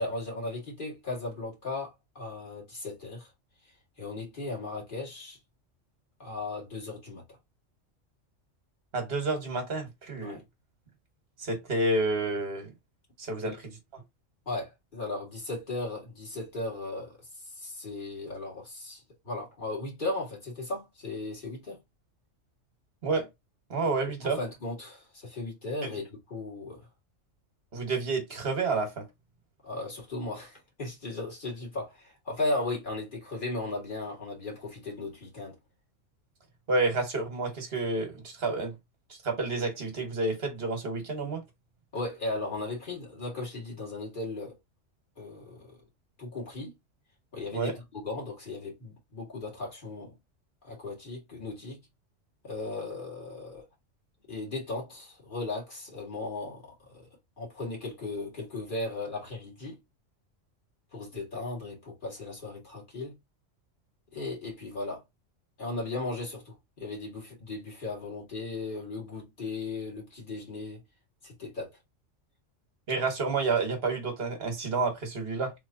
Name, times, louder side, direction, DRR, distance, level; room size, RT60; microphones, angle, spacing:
voice 1, 0.0-3.3 4.0-5.4 6.2-7.2 10.2-10.4 13.4-13.6 14.5-21.8 24.2-26.9 29.6-35.6 41.9-44.6 45.2-45.8 46.2-46.7 47.3-50.2 50.6-51.8 52.4-53.6 54.3-57.1 57.4-59.8 60.9-63.2 64.1-65.0 65.6-70.8 71.2-71.7, left 2 dB, 40° left, 2.0 m, -36 dB
voice 2, 8.9-10.4 11.4-12.7 13.2-13.6 13.9-14.0 23.0-23.3 23.7-24.4 25.8-25.9 27.7-29.1 36.7-38.7 39.2-41.4 47.5-47.7 72.9-75.5, right 3 dB, 50° right, 1.4 m, -29 dB
3.5 x 3.1 x 2.6 m
omnidirectional pair, 1.3 m